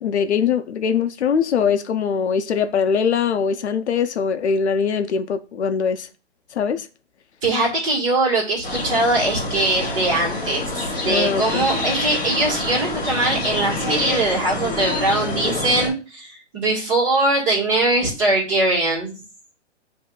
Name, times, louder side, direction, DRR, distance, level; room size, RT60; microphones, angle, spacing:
voice 1, 0.0-6.1 6.5-6.9 11.0-11.7, left 6 dB, 65° left, 0.6 m, -22 dB
voice 2, 7.4-10.7 11.0-19.1, right 2 dB, 25° right, 1.7 m, -21 dB
sound 1, 8.6-15.9, left 2 dB, 15° left, 1.6 m, -27 dB
7.9 x 2.7 x 2.3 m
hypercardioid pair, 175°, 36 cm